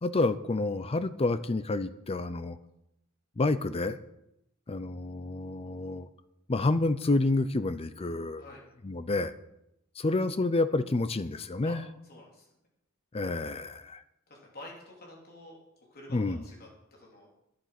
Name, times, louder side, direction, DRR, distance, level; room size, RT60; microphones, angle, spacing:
voice 1, 0.0-2.6 3.4-4.0 4.7-6.1 6.5-8.4 8.8-9.3 10.0-11.8 13.1-14.0 16.1-16.4, left 2 dB, 30° left, 13 dB, 0.5 m, -29 dB
voice 2, 12.1-12.5 14.3-17.4, left 1 dB, 45° left, -2 dB, 3.5 m, -49 dB
11.5 x 11.0 x 5.9 m, 0.84 s
head